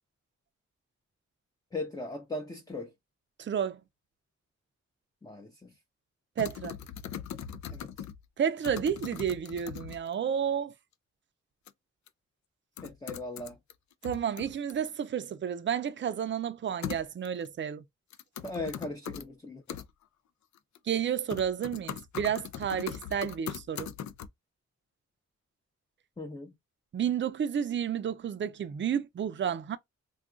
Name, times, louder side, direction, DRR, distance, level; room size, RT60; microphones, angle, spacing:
voice 1, 1.7-2.9 5.2-5.7 7.7-7.9 12.8-13.6 18.4-19.6 26.2-26.5, left 2 dB, 15° left, 0.6 m, -38 dB
voice 2, 3.4-3.8 6.4-6.8 8.4-10.7 14.0-17.8 20.9-23.9 26.9-29.8, right 8 dB, 40° right, 0.5 m, -31 dB
sound 1, 6.4-8.2 8.6-10.1 11.7-11.8 12.1-12.2 12.8-13.7 14.0-14.9 16.8-17.5 18.1-19.2 19.7-19.9 20.6-21.0 21.3-24.3, left 9 dB, 70° left, 0.4 m, -40 dB
2.3 x 2.3 x 3.7 m
cardioid pair, 80°, 29 cm